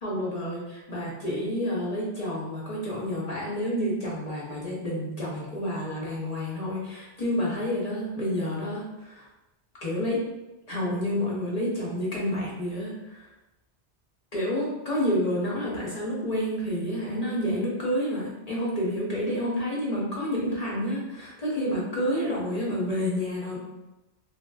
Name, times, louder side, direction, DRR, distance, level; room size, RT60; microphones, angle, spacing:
voice 1, 0.0-9.3 9.8-10.2 10.7-13.3 14.3-23.6, equal, 40° left, -5 dB, 0.7 m, -29 dB
3.3 x 2.4 x 2.3 m, 1.0 s
omnidirectional pair, 1.1 m